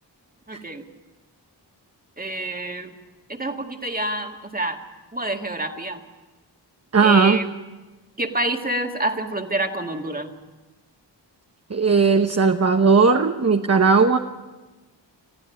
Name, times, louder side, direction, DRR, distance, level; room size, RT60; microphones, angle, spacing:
voice 1, 0.5-0.8 2.2-2.9 3.3-4.8 5.1-6.0 7.0-7.5 8.2-10.3, right 1 dB, 20° right, 4 dB, 2.0 m, -27 dB
voice 2, 6.9-7.4 11.7-14.2, right 4 dB, 35° right, 5 dB, 1.0 m, -17 dB
21.0 x 14.5 x 10.0 m, 1.2 s
wide cardioid pair, 65°, 44 cm